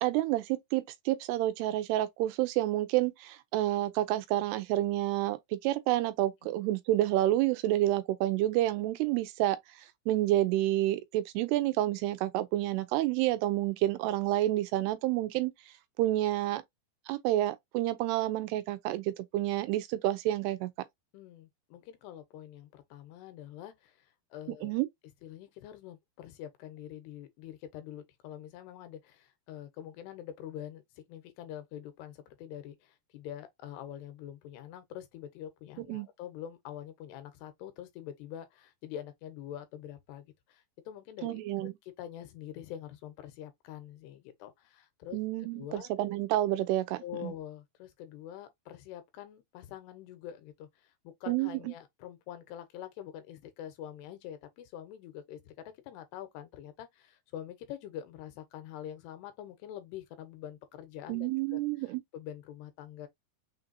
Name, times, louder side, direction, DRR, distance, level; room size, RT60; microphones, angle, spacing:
voice 1, 0.0-5.4 5.6-9.6 10.1-15.5 16.0-16.6 17.1-20.7 24.6-24.9 35.9-36.1 41.2-41.7 45.1-47.3 51.3-51.5 61.1-62.0, right 15 dB, 90° right, 2.7 m, -29 dB
voice 2, 21.1-24.8 25.2-45.9 47.0-63.1, left 10 dB, 85° left, 2.9 m, -45 dB
6.4 x 2.6 x 2.7 m
omnidirectional pair, 4.7 m